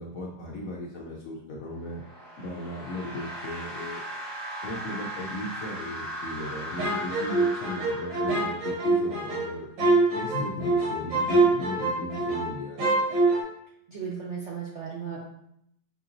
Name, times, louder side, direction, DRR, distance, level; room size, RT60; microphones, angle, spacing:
voice 1, 0.0-2.0 2.4-4.0 4.6-9.7 10.1-13.2, left 1 dB, 65° left, -3 dB, 0.9 m, -36 dB
sound 1, 1.8-8.8, right 1 dB, 20° right, 0.8 m, -38 dB
sound 2, 6.8-12.5 12.8-13.4, right 2 dB, 80° right, 1.7 m, -25 dB
voice 2, 13.9-15.2, right 6 dB, 60° right, -5 dB, 0.7 m, -35 dB
5.4 x 2.8 x 2.5 m, 0.75 s
omnidirectional pair, 2.0 m